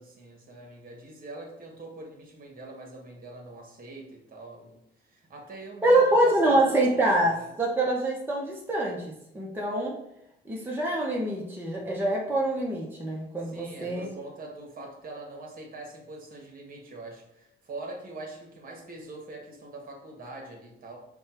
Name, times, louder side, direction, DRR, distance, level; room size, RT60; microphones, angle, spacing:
voice 1, 0.0-4.8 5.0-6.6 7.3-7.5 13.4-21.0, right 2 dB, 45° right, 1 dB, 1.4 m, -43 dB
voice 2, 5.8-10.0 10.5-14.1, right 1 dB, 10° right, -3 dB, 0.9 m, -25 dB
5.1 x 2.3 x 4.3 m, 0.80 s
cardioid pair, 90°, 20 cm